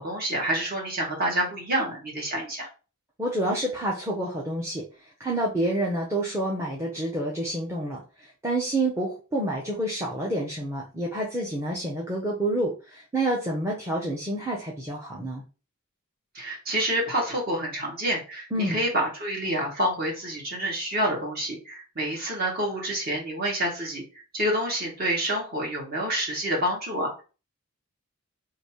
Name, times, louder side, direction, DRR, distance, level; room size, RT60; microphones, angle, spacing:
voice 1, 0.0-2.7 16.3-24.0 24.3-27.2, right 1 dB, 45° right, -2 dB, 1.7 m, -28 dB
voice 2, 3.2-4.8 5.2-8.0 8.4-15.4 18.5-18.8, right 1 dB, 10° right, -4 dB, 0.7 m, -28 dB
3.2 x 2.7 x 4.3 m, 0.34 s
head